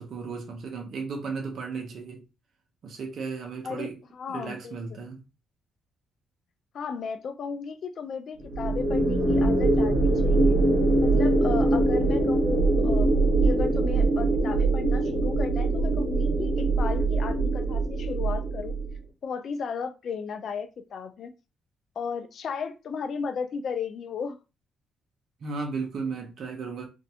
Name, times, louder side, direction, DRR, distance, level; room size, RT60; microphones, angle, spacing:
voice 1, 0.0-2.2 2.8-4.0 4.3-5.2 25.4-26.9, right 4 dB, 60° right, 0.7 m, -35 dB
voice 2, 3.6-4.8 6.7-10.6 11.0-13.1 13.4-18.8 19.2-21.3 22.0-24.4, left 6 dB, 60° left, 0.4 m, -35 dB
sound 1, 8.5-19.0, right 2 dB, 90° right, 1.0 m, -23 dB
2.5 x 2.1 x 2.7 m
cardioid pair, 90°, 0 cm